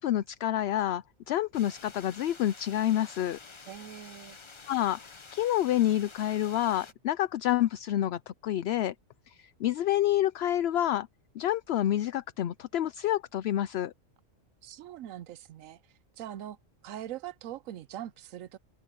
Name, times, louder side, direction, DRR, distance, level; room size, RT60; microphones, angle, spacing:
voice 1, 0.0-3.4 4.7-5.0 5.3-8.9 9.3-11.1 11.4-13.9, left 12 dB, 65° left, 0.7 m, -28 dB
sound 1, 1.5-6.9, left 4 dB, 25° left, 0.8 m, -50 dB
voice 2, 3.7-4.4 14.6-15.8 16.2-16.6 16.8-18.6, right 11 dB, 80° right, 1.0 m, -42 dB
omnidirectional pair, 1.4 m